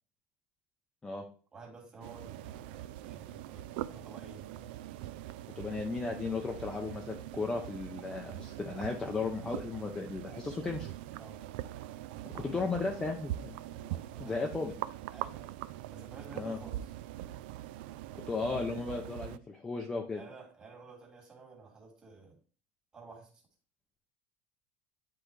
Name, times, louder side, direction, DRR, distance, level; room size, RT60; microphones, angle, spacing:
voice 1, 1.5-4.7 11.2-11.5 13.7-14.4 15.1-15.5 15.9-16.9 20.1-22.4 22.9-23.3, right 4 dB, 15° right, -1 dB, 2.0 m, -52 dB
sound 1, 2.0-19.4, right 14 dB, 75° right, 0.4 m, -42 dB
voice 2, 5.6-10.9 12.3-13.6 14.2-14.7 16.3-16.6 18.3-20.2, left 3 dB, 10° left, 1 dB, 0.6 m, -35 dB
10.0 x 3.8 x 3.2 m, 0.39 s
cardioid pair, 175°, 5 cm